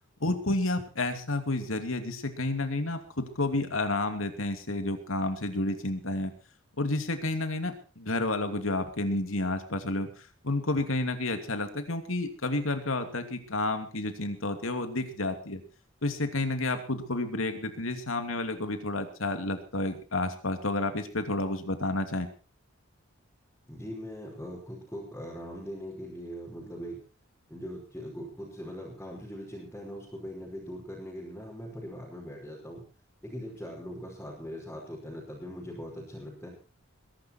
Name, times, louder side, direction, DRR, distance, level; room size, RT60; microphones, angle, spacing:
voice 1, 0.2-6.3 6.8-10.1 10.4-15.6 16.0-22.3, left 2 dB, 75° left, 7 dB, 2.7 m, -30 dB
voice 2, 23.7-27.0 27.5-32.8 33.2-36.5, equal, 10° left, -5 dB, 5.3 m, -41 dB
22.0 x 11.5 x 4.5 m, 0.36 s
head